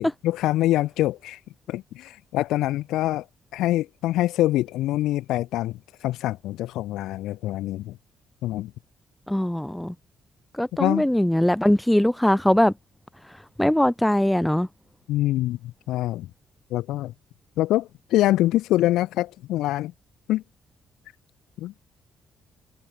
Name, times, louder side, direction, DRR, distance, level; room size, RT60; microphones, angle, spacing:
voice 1, 0.0-1.4 1.7-3.3 3.5-8.0 8.4-8.7 10.8-11.1 15.1-16.3 16.7-17.1 17.6-19.9 20.3-20.4 21.6-21.7, left 15 dB, 90° left, 0.4 m, -25 dB
voice 2, 9.3-9.9 10.6-12.7 13.6-14.7, left 1 dB, 5° left, 0.9 m, -21 dB
cardioid pair, 90°, 0 cm